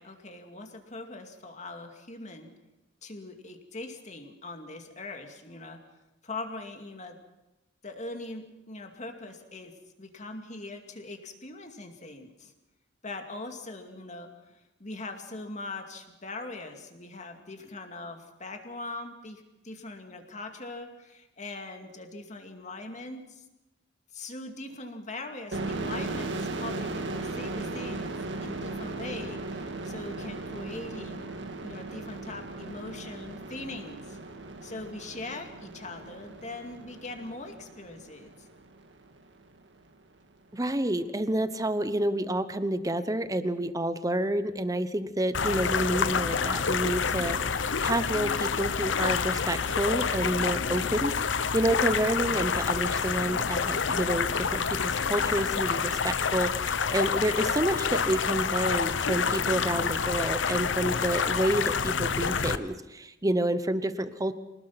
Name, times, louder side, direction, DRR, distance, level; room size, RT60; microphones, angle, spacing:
voice 1, 0.0-2.5 3.0-5.8 6.2-7.2 7.8-12.5 13.0-23.4 24.1-31.3 31.6-34.2 34.6-38.5, left 2 dB, 40° left, 5 dB, 2.4 m, -41 dB
sound 1, 25.5-39.0, right 2 dB, 65° right, 1.9 m, -37 dB
voice 2, 40.5-64.3, right 1 dB, 20° right, 12 dB, 1.0 m, -29 dB
sound 2, 45.3-62.6, left 6 dB, 70° left, 0.8 m, -28 dB
25.5 x 19.0 x 6.0 m, 0.96 s
head